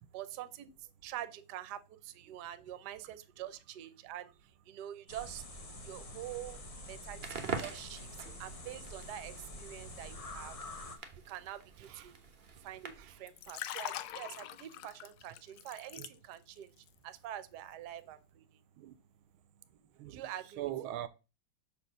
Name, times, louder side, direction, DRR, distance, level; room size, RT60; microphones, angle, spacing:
voice 1, 0.1-0.7 1.0-4.3 4.7-5.4 5.9-6.6 6.9-8.1 8.4-9.3 9.6-10.5 11.3-12.1 12.6-12.9 13.2-16.7 17.0-18.2 20.1-20.7, right 12 dB, 65° right, 1.1 m, -45 dB
sound 1, 5.1-11.0, left 1 dB, 50° left, 0.4 m, -47 dB
Crackle, 7.1-13.3, right 5 dB, 45° right, 0.7 m, -45 dB
Liquid, 13.2-16.6 16.9-17.2, left 12 dB, 75° left, 1.1 m, -43 dB
voice 2, 20.6-21.1, right 13 dB, 80° right, 1.4 m, -41 dB
5.6 x 4.6 x 6.4 m
omnidirectional pair, 2.4 m